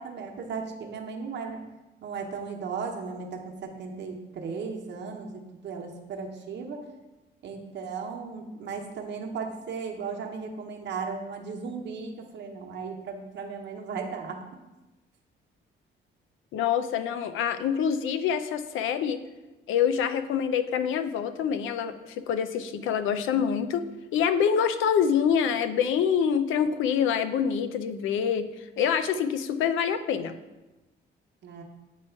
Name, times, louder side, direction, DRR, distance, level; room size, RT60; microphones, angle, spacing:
voice 1, 0.0-1.6 2.0-6.8 7.4-14.4 31.4-31.6, right 5 dB, 60° right, 2 dB, 0.9 m, -36 dB
voice 2, 16.5-19.2 19.7-28.5 28.8-30.4, left 7 dB, 85° left, 11 dB, 0.5 m, -26 dB
8.8 x 3.0 x 4.4 m, 1.1 s
cardioid pair, 90°, 20 cm